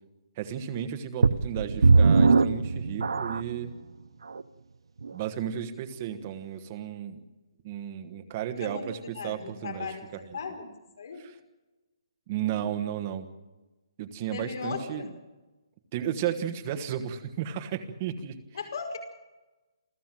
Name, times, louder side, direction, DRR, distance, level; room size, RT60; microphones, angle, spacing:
voice 1, 0.4-3.7 5.1-7.2 7.6-10.2 11.2-11.3 12.3-13.3 14.0-15.1 15.9-18.4, right 9 dB, 20° right, 8 dB, 1.3 m, -33 dB
sound 1, 1.2-3.7 4.3-4.4 5.0-5.1, right 4 dB, 85° right, 0.9 m, -20 dB
voice 2, 8.6-10.1 10.3-10.7 11.0-11.2 14.3-15.1 18.5-19.0, left 5 dB, 50° left, 3 dB, 5.1 m, -37 dB
28.5 x 14.5 x 7.6 m, 1.1 s
hypercardioid pair, 175°, 3 cm